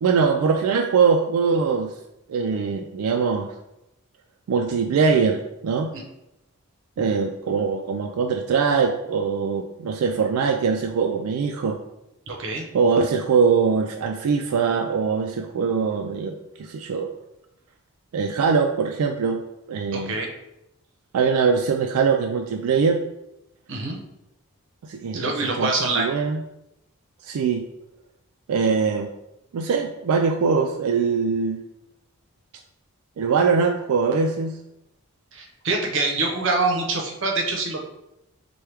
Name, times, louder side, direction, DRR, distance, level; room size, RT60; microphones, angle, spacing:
voice 1, 0.0-1.9 2.3-3.5 4.5-5.9 7.0-11.8 12.7-17.1 18.1-19.4 19.7-20.2 21.1-23.0 24.8-26.4 27.2-27.6 28.5-29.1 29.5-31.6 33.2-34.5, right 5 dB, 85° right, 4 dB, 0.3 m, -22 dB
voice 2, 12.3-12.6 19.9-20.3 23.7-24.0 25.1-26.1 35.3-37.8, right 3 dB, 55° right, 1 dB, 0.7 m, -25 dB
4.4 x 2.2 x 3.3 m, 0.88 s
head